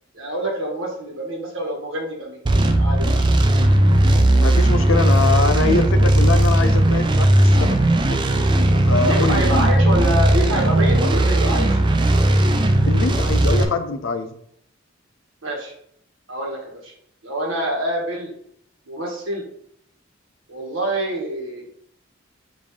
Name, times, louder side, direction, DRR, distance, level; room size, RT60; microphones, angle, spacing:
voice 1, 0.1-2.4 2.8-3.6 9.1-11.8 15.4-15.7 16.3-16.9 17.2-18.3 18.9-19.4 20.5-21.6, right 1 dB, 85° right, -1 dB, 1.4 m, -26 dB
sound 1, 2.5-13.7, right 1 dB, 25° right, 0.4 m, -17 dB
voice 2, 4.3-7.8 8.1-9.7 12.8-14.3, left 3 dB, 75° left, 8 dB, 0.5 m, -24 dB
5.3 x 2.7 x 3.2 m, 0.67 s
head